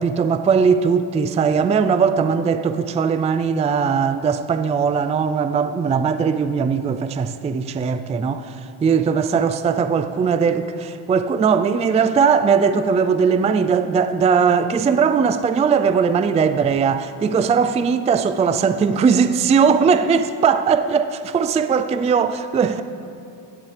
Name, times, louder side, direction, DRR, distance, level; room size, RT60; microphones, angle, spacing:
voice 1, 0.0-22.8, right 6 dB, 15° right, 0.4 m, -19 dB
17.0 x 12.0 x 3.3 m
cardioid pair, 105°, 44 cm